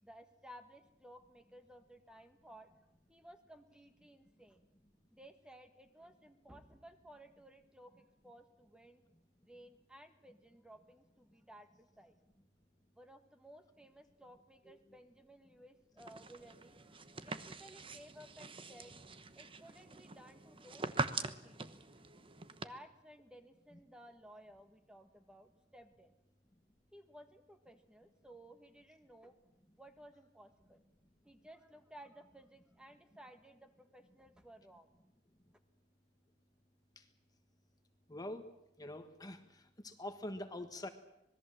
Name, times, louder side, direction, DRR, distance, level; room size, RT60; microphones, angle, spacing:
voice 1, 0.0-2.7 3.1-4.6 5.1-9.0 9.4-12.2 12.9-18.9 19.3-21.9 22.5-26.1 26.9-29.4 29.8-30.8 31.2-34.9, equal, 5° right, 7 dB, 1.7 m, -57 dB
sound 1, 16.0-22.7, right 4 dB, 30° right, 1.1 m, -43 dB
voice 2, 38.1-38.5 38.8-40.9, left 1 dB, 20° left, 7 dB, 1.4 m, -45 dB
26.0 x 20.5 x 7.6 m, 0.81 s
head